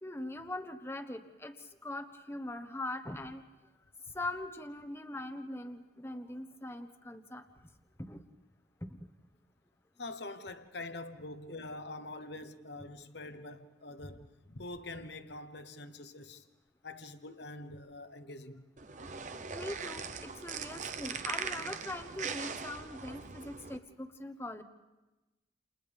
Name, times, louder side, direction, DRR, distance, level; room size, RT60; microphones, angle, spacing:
voice 1, 0.0-3.4 4.1-7.4 8.0-8.2 8.8-9.0 19.5-24.6, left 1 dB, 15° left, 1.0 m, -41 dB
voice 2, 10.0-16.4 16.8-18.6, left 2 dB, 70° left, 1.1 m, -45 dB
sound 1, 18.8-23.8, right 5 dB, 40° right, 0.8 m, -40 dB
29.5 x 29.0 x 3.5 m
head